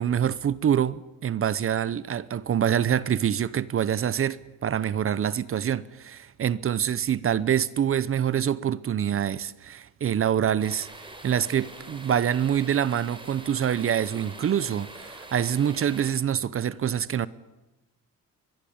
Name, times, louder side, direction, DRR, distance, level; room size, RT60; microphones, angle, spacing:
voice 1, 0.0-10.9 11.2-17.3, right 9 dB, 40° right, 0.8 m, -25 dB
sound 1, 10.6-16.1, right 2 dB, 15° right, 4.2 m, -44 dB
23.0 x 22.0 x 8.8 m
cardioid pair, 140°, 34 cm